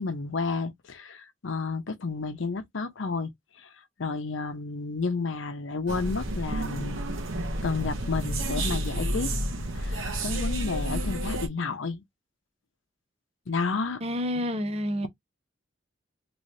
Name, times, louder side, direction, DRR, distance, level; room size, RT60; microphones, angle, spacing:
voice 1, 0.0-3.3 3.6-3.7 4.0-7.0 7.6-9.3 9.7-12.0 13.5-14.0, left 4 dB, 75° left, 0.6 m, -31 dB
sound 1, 5.9-11.5, right 1 dB, 80° right, 1.0 m, -30 dB
voice 2, 14.0-15.1, equal, 30° right, 0.6 m, -29 dB
3.0 x 2.7 x 3.1 m
head